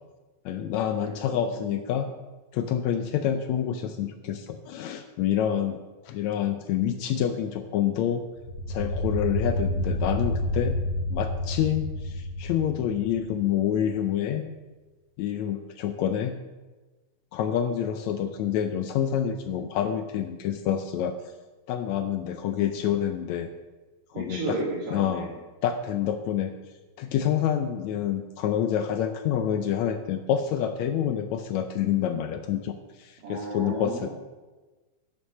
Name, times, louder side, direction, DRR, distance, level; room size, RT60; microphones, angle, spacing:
voice 1, 0.4-2.1 2.5-8.2 8.7-10.8 11.1-14.4 15.2-16.4 17.3-21.1 21.7-23.5 24.1-24.6 24.9-25.3 25.6-26.5 27.0-34.1, left 9 dB, 75° left, 8 dB, 1.7 m, -27 dB
voice 2, 1.0-1.9 24.1-25.3 33.2-34.1, right 2 dB, 80° right, -7 dB, 3.9 m, -34 dB
sound 1, 8.4-13.6, left 1 dB, 55° left, 2.6 m, -30 dB
11.0 x 7.3 x 6.3 m, 1.2 s
omnidirectional pair, 3.7 m